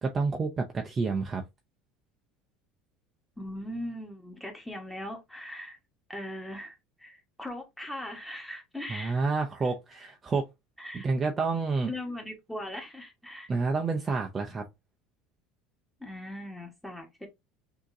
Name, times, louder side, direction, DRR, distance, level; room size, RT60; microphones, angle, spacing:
voice 1, 0.0-1.4 8.9-10.5 10.9-11.9 13.5-14.6, right 4 dB, 20° right, 0.6 m, -29 dB
voice 2, 3.4-5.8 6.1-9.2 10.8-11.1 11.9-13.5 16.0-17.3, left 1 dB, 5° left, 1.4 m, -39 dB
6.2 x 2.9 x 2.7 m
cardioid pair, 140°, 0 cm